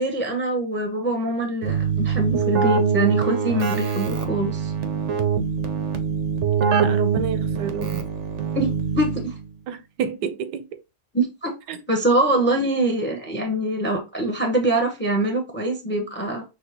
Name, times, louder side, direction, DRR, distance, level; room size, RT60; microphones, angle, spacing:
voice 1, 0.0-4.7 8.5-9.3 11.1-11.5 11.9-16.4, right 1 dB, 10° left, 0.6 m, -24 dB
Keyboard (musical), 1.6-9.5, right 6 dB, 60° right, 0.8 m, -24 dB
voice 2, 6.6-8.0 9.7-10.8 11.7-11.8, right 7 dB, 85° right, 1.3 m, -30 dB
6.2 x 2.7 x 2.8 m
omnidirectional pair, 1.8 m